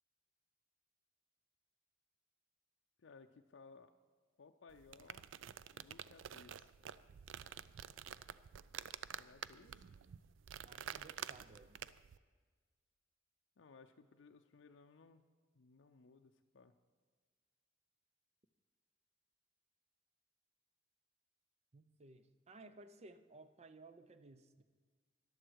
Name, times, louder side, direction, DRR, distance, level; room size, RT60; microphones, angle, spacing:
voice 1, 3.0-3.9 4.4-5.3 5.7-6.7 9.2-9.9 13.6-15.2 15.5-16.7, left 4 dB, 70° left, 5 dB, 0.5 m, -61 dB
sound 1, 4.7-12.2, right 9 dB, 80° right, 0.4 m, -49 dB
voice 2, 10.6-11.8 21.7-24.6, right 2 dB, 35° right, 11 dB, 0.6 m, -58 dB
14.0 x 11.0 x 4.7 m, 1.5 s
head